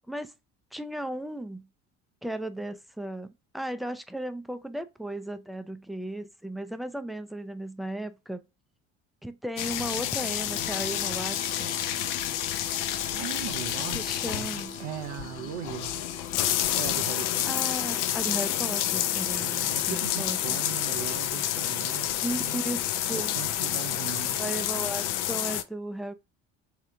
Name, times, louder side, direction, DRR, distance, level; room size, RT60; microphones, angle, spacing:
voice 1, 0.7-1.7 2.2-8.4 9.2-11.8 13.9-14.8 17.4-20.4 22.2-23.3 24.4-26.1, right 1 dB, ahead, 0.3 m, -35 dB
sound 1, 9.6-25.6, left 12 dB, 70° left, 0.5 m, -29 dB
Harmonica, 10.4-23.1, left 1 dB, 35° left, 1.2 m, -46 dB
voice 2, 13.2-16.1 16.7-17.7 19.4-22.6 23.1-24.5, right 12 dB, 85° right, 0.7 m, -39 dB
3.2 x 2.9 x 3.5 m
supercardioid pair, 80°, 33 cm